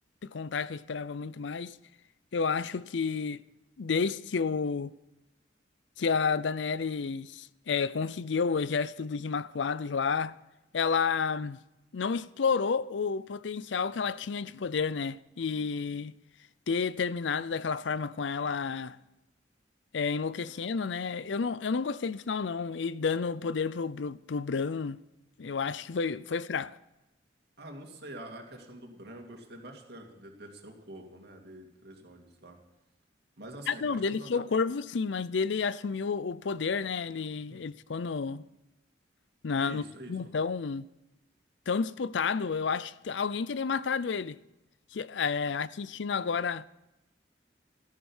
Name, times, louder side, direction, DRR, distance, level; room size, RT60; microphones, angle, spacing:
voice 1, 0.2-1.8 2.3-3.4 3.8-4.9 6.0-10.3 10.7-11.6 11.9-16.1 16.7-19.0 19.9-25.0 25.4-26.8 33.7-38.4 39.4-39.8 40.1-40.9 41.7-44.4 44.9-46.7, left 5 dB, 75° left, 0.5 m, -30 dB
voice 2, 27.6-32.6 33.4-34.4 37.5-37.6 39.6-40.2, right 1 dB, 60° right, 2.5 m, -46 dB
14.0 x 10.5 x 7.2 m
head